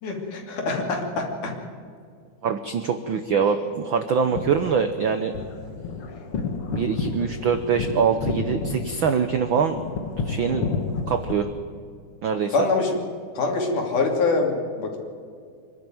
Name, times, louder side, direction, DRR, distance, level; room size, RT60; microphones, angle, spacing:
voice 1, 0.0-1.5 12.5-13.0 13.3-15.0, left 3 dB, 80° left, 2 dB, 4.3 m, -24 dB
voice 2, 2.4-5.3 6.7-9.8 10.2-10.7 11.1-11.5 12.2-12.5, right 6 dB, 85° right, 8 dB, 1.1 m, -24 dB
sound 1, 4.1-11.3, left 4 dB, 50° left, 2.3 m, -31 dB
25.0 x 12.0 x 9.1 m, 2.2 s
omnidirectional pair, 3.6 m